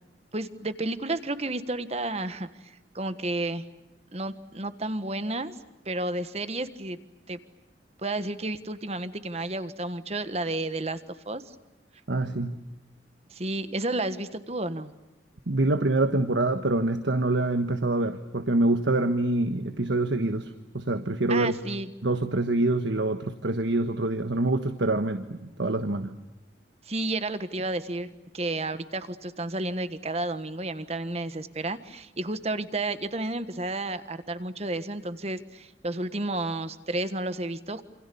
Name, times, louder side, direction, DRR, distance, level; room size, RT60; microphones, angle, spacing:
voice 1, 0.3-3.6 4.1-5.5 5.8-7.0 7.3-7.4 8.0-11.0 11.3-11.5 13.3-14.9 21.3-21.9 26.8-37.8, right 2 dB, 35° right, 11 dB, 1.4 m, -31 dB
voice 2, 12.1-12.6 15.5-21.6 22.0-26.1, right 2 dB, 80° right, 9 dB, 1.3 m, -26 dB
28.0 x 28.0 x 7.0 m, 1.0 s
head